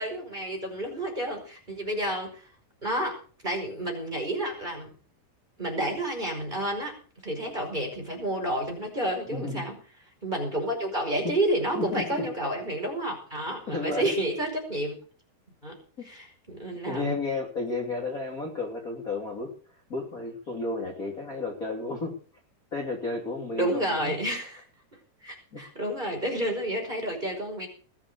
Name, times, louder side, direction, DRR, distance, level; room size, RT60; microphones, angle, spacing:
voice 1, 0.0-2.5 2.8-3.2 3.4-4.9 5.6-7.0 7.2-9.8 10.2-14.9 15.6-15.8 16.0-17.1 23.5-24.6 25.2-27.7, right 1 dB, 10° right, 2 dB, 5.2 m, -30 dB
voice 2, 9.3-9.6 11.2-11.4 11.7-12.3 13.7-14.1 16.0-16.1 16.9-22.2 22.7-24.1 25.5-25.6, left 3 dB, 25° left, 0 dB, 3.0 m, -32 dB
21.0 x 7.6 x 6.9 m, 0.41 s
omnidirectional pair, 4.1 m